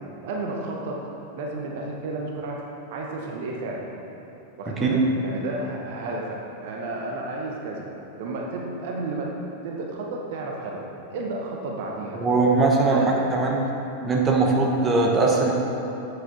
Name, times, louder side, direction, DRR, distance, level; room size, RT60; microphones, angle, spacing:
voice 1, 0.2-1.0 1.4-2.6 2.9-3.9 4.6-7.8 8.2-9.3 9.6-10.8 11.1-12.3 12.8-13.1, right 2 dB, 50° right, -1 dB, 0.9 m, -32 dB
voice 2, 4.7-5.0 12.2-13.0 13.3-13.6 14.0-15.5, right 3 dB, 20° right, -1 dB, 1.0 m, -20 dB
7.8 x 6.0 x 4.0 m, 2.9 s
figure-of-eight pair, 90°, 0 cm